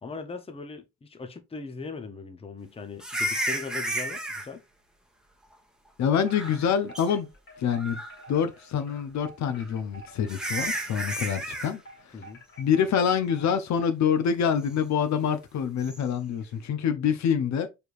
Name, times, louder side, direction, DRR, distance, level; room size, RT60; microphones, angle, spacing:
voice 1, 0.0-4.6 12.1-12.4, left 4 dB, 20° left, 0.7 m, -39 dB
sound 1, 3.0-4.5 6.1-6.7 6.9-7.1 7.7-8.2 9.6-9.7 10.3-11.7 15.8-16.0, right 1 dB, ahead, 1.1 m, -32 dB
voice 2, 6.0-7.3 7.6-8.0 8.3-12.1 12.6-17.7, left 7 dB, 65° left, 0.7 m, -26 dB
Wind chime, 6.2-13.6, right 2 dB, 40° left, 2.0 m, -50 dB
4.5 x 3.4 x 2.5 m
cardioid pair, 90°, 30 cm